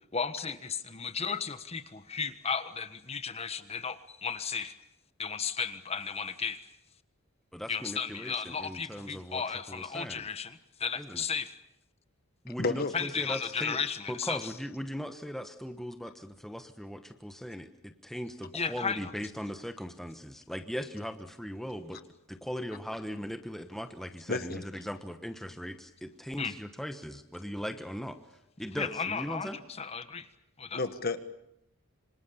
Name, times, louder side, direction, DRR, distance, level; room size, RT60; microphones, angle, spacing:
voice 1, 0.1-4.7 5.2-6.6 7.7-11.5 12.9-14.4 18.5-19.1 26.4-26.5 28.8-30.3 30.6-30.8, left 6 dB, 30° left, 11 dB, 1.3 m, -34 dB
voice 2, 7.5-10.3 11.0-11.2 12.4-28.2 28.6-29.6, equal, ahead, 7 dB, 1.2 m, -39 dB
voice 3, 12.6-12.9 24.3-24.6 30.7-31.2, left 3 dB, 45° left, 10 dB, 1.6 m, -31 dB
26.5 x 26.0 x 7.1 m, 0.79 s
head